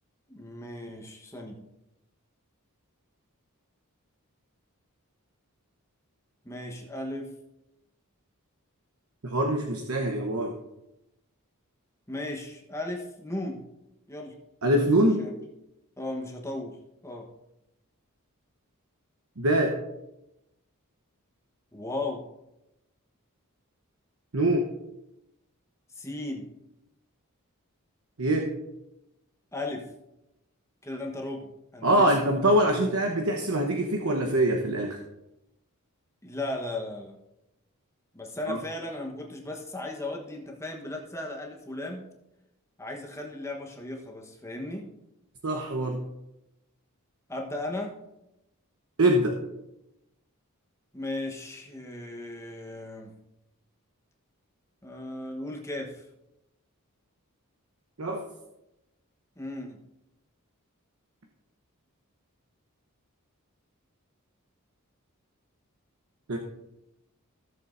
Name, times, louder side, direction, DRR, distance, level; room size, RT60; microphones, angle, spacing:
voice 1, 0.3-1.6 6.4-7.3 12.1-13.6 14.1-14.3 15.0-15.3 16.0-16.8 17.0-17.3 21.7-22.2 25.9-26.4 29.5-29.9 30.8-32.3 36.2-37.1 38.1-42.1 42.8-44.9 47.3-48.0 50.9-53.1 54.8-56.1 59.4-59.8, left 2 dB, 15° left, 0 dB, 1.1 m, -36 dB
voice 2, 9.2-10.5 14.6-15.2 19.4-19.8 24.3-24.7 28.2-28.5 31.8-35.0 38.5-38.6 45.4-46.0 49.0-49.4 58.0-58.2 66.3-66.4, right 1 dB, 75° right, 2 dB, 1.0 m, -24 dB
16.5 x 6.9 x 2.6 m, 0.91 s
head